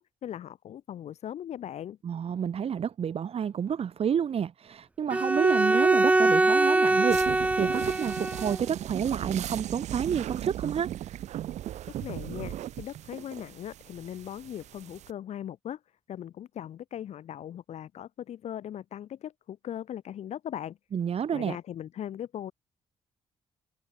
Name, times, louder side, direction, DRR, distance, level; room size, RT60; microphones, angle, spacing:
voice 1, 0.0-2.0 12.0-15.8 16.1-20.8 21.3-22.5, left 10 dB, 70° left, 3.1 m, -39 dB
voice 2, 2.0-10.9 20.9-21.6, right 8 dB, 55° right, 2.4 m, -29 dB
Bowed string instrument, 5.1-8.6, right 2 dB, 10° right, 0.4 m, -23 dB
sound 1, 7.1-15.1, right 12 dB, 75° right, 3.6 m, -37 dB
supercardioid pair, 50°, 12 cm